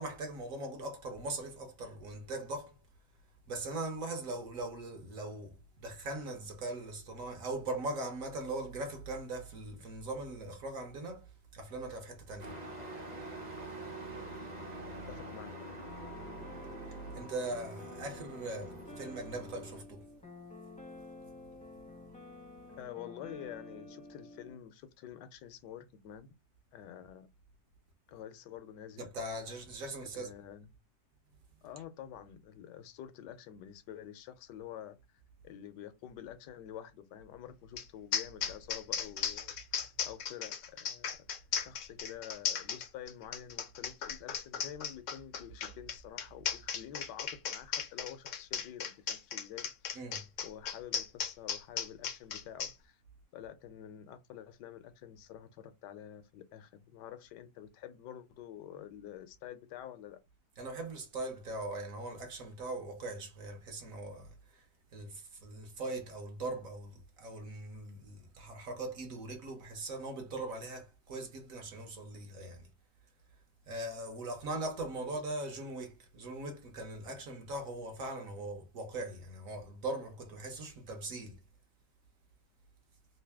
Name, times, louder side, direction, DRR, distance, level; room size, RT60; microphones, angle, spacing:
voice 1, 0.0-2.8 3.5-12.6 17.1-20.1 29.0-30.3 49.9-50.3 60.6-64.7 64.9-72.7 73.7-81.4, right 2 dB, 55° right, 1.2 m, -40 dB
Truck, 12.4-19.8, right 1 dB, 30° right, 0.8 m, -45 dB
voice 2, 15.1-15.8 22.8-26.3 26.7-27.3 28.1-29.1 30.1-30.7 31.6-41.1 41.5-49.9 50.4-53.0 53.3-60.2 75.0-75.2, left 10 dB, 80° left, 1.2 m, -48 dB
sound 1, 15.9-24.6, left 2 dB, 5° left, 0.6 m, -51 dB
sound 2, 37.8-37.9 38.1-52.7, left 7 dB, 65° left, 0.8 m, -36 dB
3.2 x 2.6 x 3.4 m
omnidirectional pair, 1.9 m